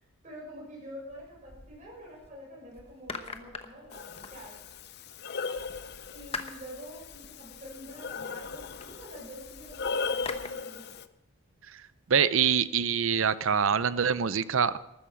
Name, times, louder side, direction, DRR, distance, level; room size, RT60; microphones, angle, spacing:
voice 1, 0.2-4.6 6.1-10.9, equal, 35° right, -3 dB, 7.1 m, -46 dB
sound 1, 1.1-2.3 2.7-4.9 5.5-10.5, left 4 dB, 30° left, 0.9 m, -45 dB
Breathing, 3.9-11.0, left 4 dB, 50° left, 0.6 m, -38 dB
voice 2, 12.1-14.8, right 7 dB, 60° right, 15 dB, 0.6 m, -25 dB
14.0 x 13.0 x 5.2 m, 0.92 s
head